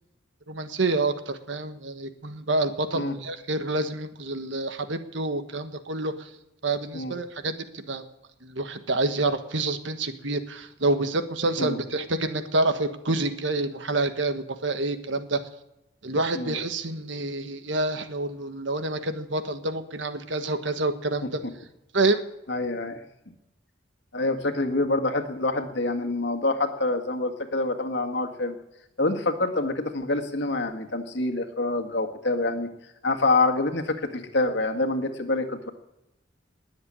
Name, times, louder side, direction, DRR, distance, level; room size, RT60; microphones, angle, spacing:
voice 1, 0.5-6.3 6.6-8.0 8.4-15.4 16.0-21.4 21.9-22.2, right 2 dB, 75° right, 9 dB, 1.4 m, -28 dB
voice 2, 22.5-23.0 24.1-28.6 29.0-32.7 33.0-35.7, left 2 dB, 65° left, 5 dB, 1.8 m, -26 dB
20.5 x 7.9 x 8.8 m, 0.93 s
head